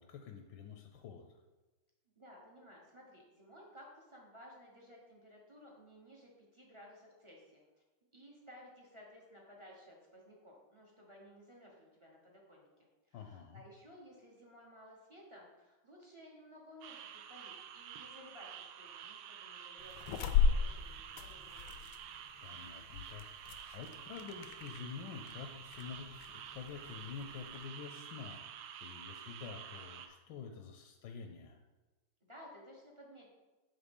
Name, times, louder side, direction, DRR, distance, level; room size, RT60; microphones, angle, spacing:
voice 1, 0.0-1.4 13.1-13.6 22.4-31.6, left 6 dB, 70° left, 4 dB, 1.1 m, -48 dB
voice 2, 2.2-7.6 8.1-12.7 13.1-21.8 32.3-33.3, equal, 40° right, -3 dB, 0.4 m, -57 dB
sound 1, 16.8-30.1, right 8 dB, 75° right, 1.2 m, -50 dB
sound 2, 19.8-27.7, left 5 dB, 90° left, 1.5 m, -37 dB
7.4 x 3.9 x 5.3 m, 1.2 s
omnidirectional pair, 2.4 m